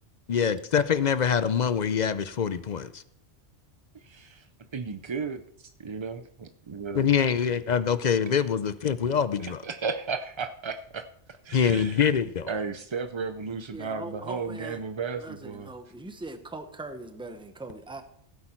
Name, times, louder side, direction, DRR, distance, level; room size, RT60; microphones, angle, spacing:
voice 1, 0.3-3.0 6.9-9.6 11.5-12.5, left 7 dB, 50° left, 14 dB, 0.6 m, -25 dB
voice 2, 4.0-4.4 4.7-5.4 5.8-7.1 9.4-11.0 11.4-12.0 12.5-15.7, right 5 dB, 45° right, 9 dB, 0.4 m, -34 dB
voice 3, 13.7-14.8 15.2-18.0, right 2 dB, 5° right, 7 dB, 0.9 m, -40 dB
15.5 x 8.5 x 4.4 m, 0.68 s
omnidirectional pair, 1.2 m